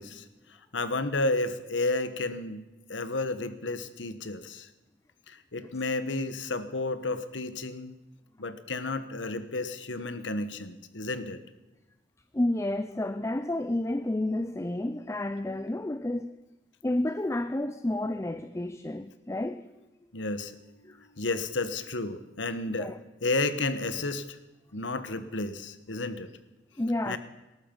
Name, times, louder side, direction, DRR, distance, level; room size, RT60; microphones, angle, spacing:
voice 1, 0.0-2.6 2.9-4.7 5.3-7.9 8.4-11.4 20.1-22.9 23.2-24.4 24.7-26.3 27.1-27.2, left 2 dB, 80° left, 1.3 m, -32 dB
voice 2, 12.3-16.4 16.8-19.7 20.8-21.0 22.8-23.0 26.8-27.2, left 1 dB, 15° left, 0.5 m, -30 dB
19.0 x 13.5 x 5.4 m
head